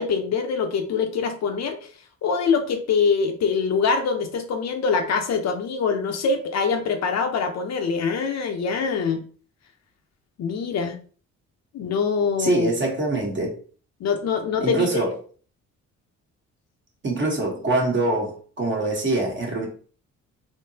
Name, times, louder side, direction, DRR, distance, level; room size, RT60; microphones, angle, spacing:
voice 1, 0.0-1.8 2.2-9.2 10.4-11.0 11.7-12.7 14.0-15.0, left 5 dB, 60° left, 5 dB, 0.7 m, -24 dB
voice 2, 12.4-13.5 14.6-15.1 17.0-19.7, right 2 dB, 40° right, 0 dB, 1.2 m, -24 dB
3.5 x 2.9 x 2.8 m, 0.41 s
cardioid pair, 90°, 30 cm